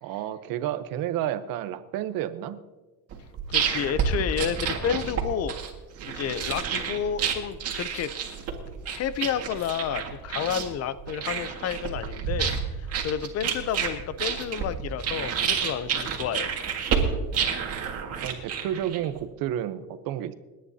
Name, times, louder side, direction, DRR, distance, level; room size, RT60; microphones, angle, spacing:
voice 1, 0.0-2.6 17.0-17.2 18.2-20.3, right 11 dB, 80° right, 12 dB, 0.9 m, -31 dB
sound 1, 3.1-19.2, right 7 dB, 45° right, 1.8 m, -29 dB
voice 2, 3.5-5.5 6.1-8.1 8.9-12.5 12.8-16.5, left 8 dB, 45° left, 14 dB, 0.6 m, -30 dB
29.0 x 9.9 x 2.8 m, 1.2 s
cardioid pair, 170°, 34 cm